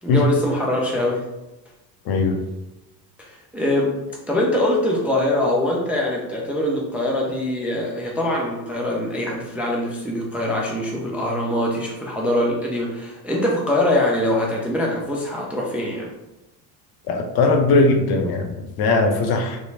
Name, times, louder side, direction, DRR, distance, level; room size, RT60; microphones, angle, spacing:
voice 1, 0.0-1.2 3.2-3.9 4.3-16.1, left 1 dB, 5° right, -2 dB, 0.4 m, -23 dB
voice 2, 2.1-2.4 17.1-19.6, left 3 dB, 50° left, 4 dB, 0.5 m, -19 dB
2.8 x 2.1 x 2.6 m, 0.96 s
hypercardioid pair, 80°, 48 cm